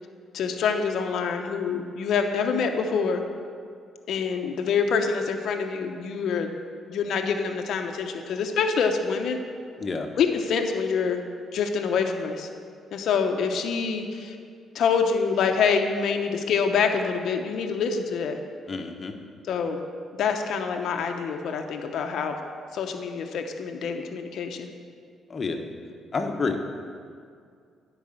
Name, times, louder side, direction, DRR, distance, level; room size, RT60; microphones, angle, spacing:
voice 1, 0.3-3.2 4.1-6.5 6.9-9.4 10.2-11.2 11.5-12.5 12.9-14.4 14.7-18.4 19.5-19.8 20.2-22.4 22.7-24.7, left 5 dB, 70° left, 4 dB, 0.8 m, -26 dB
voice 2, 18.7-19.1 25.3-25.6 26.1-26.7, left 4 dB, 40° left, 4 dB, 1.0 m, -29 dB
10.5 x 4.9 x 7.7 m, 2.2 s
cardioid pair, 90°, 0 cm